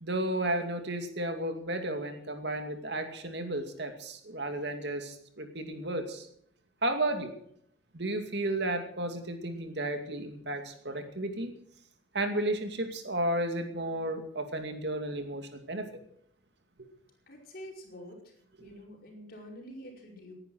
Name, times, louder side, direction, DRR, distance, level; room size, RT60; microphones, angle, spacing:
voice 1, 0.0-6.3 6.8-7.3 7.9-11.5 12.1-15.9, right 1 dB, 60° right, 5 dB, 2.5 m, -33 dB
voice 2, 17.3-18.3 18.6-20.3, equal, 50° left, 0 dB, 5.1 m, -47 dB
19.0 x 10.5 x 6.2 m, 0.67 s
head